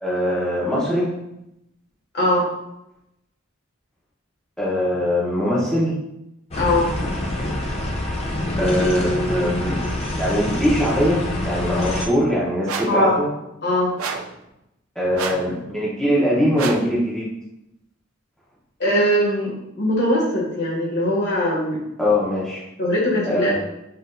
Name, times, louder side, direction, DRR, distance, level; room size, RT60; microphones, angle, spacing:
voice 1, 0.0-1.1 4.6-6.0 8.1-8.2 8.6-13.3 14.9-17.3 22.0-22.6 23.3-23.5, equal, 5° left, -7 dB, 0.9 m, -22 dB
voice 2, 2.1-2.5 6.6-6.9 12.9-13.2 13.6-13.9 18.8-21.8 22.8-23.5, left 1 dB, 55° left, -4 dB, 1.6 m, -20 dB
sound 1, 6.5-12.1, left 1 dB, 30° left, 0.5 m, -25 dB
sound 2, 12.7-13.0 14.0-14.4 15.1-15.5 16.6-16.9, right 5 dB, 90° right, 0.5 m, -29 dB
7.5 x 2.6 x 2.6 m, 0.86 s
head